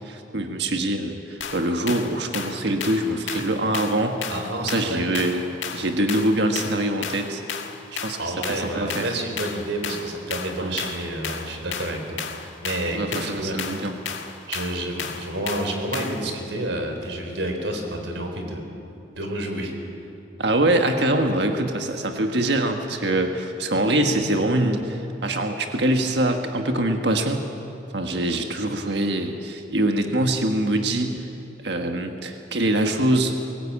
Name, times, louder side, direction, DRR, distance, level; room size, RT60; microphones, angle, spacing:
voice 1, 0.0-4.3 4.6-5.4 5.7-7.4 7.9-9.1 10.6-10.8 12.9-14.0 20.4-27.5 27.9-31.3 31.6-33.4, right 1 dB, 65° right, 4 dB, 1.5 m, -24 dB
sound 1, 1.4-16.3, left 7 dB, 90° left, 1.7 m, -34 dB
voice 2, 4.3-5.4 8.2-13.7 14.5-18.6 19.2-19.7, right 1 dB, 85° right, 4 dB, 4.1 m, -29 dB
22.0 x 18.0 x 8.7 m, 2.8 s
head